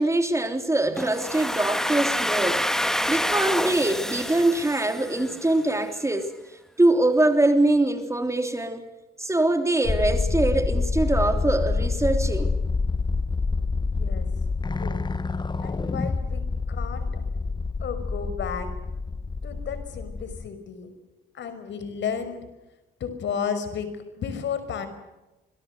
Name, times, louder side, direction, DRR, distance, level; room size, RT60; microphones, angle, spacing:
voice 1, 0.0-2.7 3.1-6.3 6.8-8.9 9.2-12.5, right 2 dB, 15° right, 6 dB, 3.2 m, -23 dB
Domestic sounds home sounds, 1.0-5.7, equal, ahead, 1.9 m, -27 dB
sound 1, 9.8-20.5, left 4 dB, 20° left, 1.1 m, -27 dB
voice 2, 13.9-14.3 14.8-15.0 15.6-17.4 17.8-18.7 19.4-22.5 23.0-24.9, left 7 dB, 65° left, 10 dB, 5.6 m, -33 dB
26.5 x 23.0 x 6.8 m, 1.0 s
cardioid pair, 90°, 20 cm